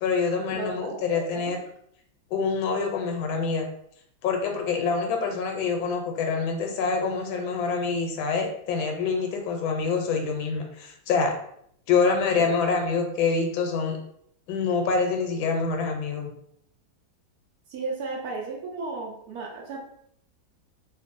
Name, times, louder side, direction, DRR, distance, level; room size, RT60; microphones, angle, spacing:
voice 1, 0.0-1.6 2.3-3.7 4.2-11.3 11.9-14.0 14.5-16.3, left 5 dB, 90° left, 2 dB, 1.4 m, -26 dB
voice 2, 0.5-1.6 12.4-12.5 17.7-19.8, right 3 dB, 70° right, -1 dB, 0.9 m, -35 dB
3.0 x 2.6 x 2.5 m, 0.69 s
omnidirectional pair, 2.1 m